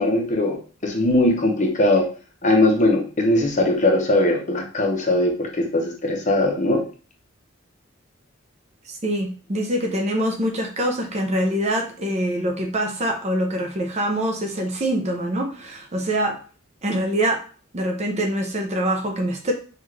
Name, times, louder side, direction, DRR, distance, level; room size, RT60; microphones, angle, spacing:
voice 1, 0.0-2.1 2.4-6.8, left 1 dB, 35° left, 1 dB, 0.9 m, -20 dB
voice 2, 8.9-16.4 16.8-17.4 17.7-19.5, right 1 dB, 35° right, 2 dB, 0.6 m, -24 dB
5.3 x 2.5 x 3.2 m, 0.39 s
head